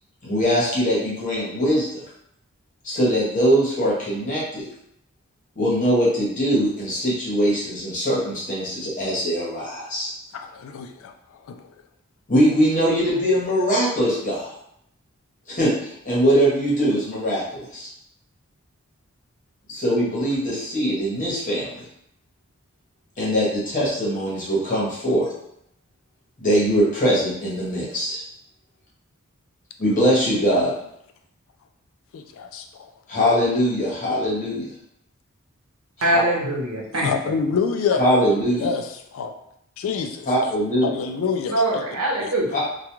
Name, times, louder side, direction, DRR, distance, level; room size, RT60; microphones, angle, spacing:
voice 1, 0.2-2.0 2.8-4.7 5.6-10.1 12.3-14.5 15.5-17.9 19.7-21.8 23.2-25.2 26.4-28.2 29.8-30.7 33.1-34.7 36.0-36.2 38.0-38.7 40.3-40.9 42.5-42.6, equal, 35° left, -7 dB, 0.9 m, -22 dB
voice 2, 10.3-11.1 11.5-11.7 32.1-32.9 36.9-38.1 38.6-39.3 39.8-40.5 40.8-41.8 42.2-42.3, left 6 dB, 65° left, 5 dB, 0.3 m, -27 dB
voice 3, 36.0-37.1 41.5-42.5, right 2 dB, 85° right, -4 dB, 0.8 m, -22 dB
2.3 x 2.2 x 2.9 m, 0.74 s
head